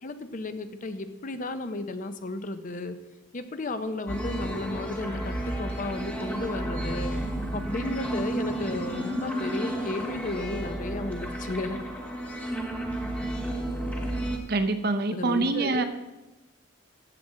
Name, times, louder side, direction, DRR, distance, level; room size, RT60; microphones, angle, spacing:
voice 1, 0.0-3.0 3.3-7.1 7.5-11.8 15.1-15.8, left 2 dB, 40° left, 10 dB, 0.6 m, -34 dB
sound 1, 4.1-14.4, right 1 dB, 5° left, 1.1 m, -32 dB
voice 2, 14.5-15.8, right 3 dB, 50° right, 9 dB, 0.7 m, -25 dB
13.5 x 7.5 x 3.7 m, 1.1 s
head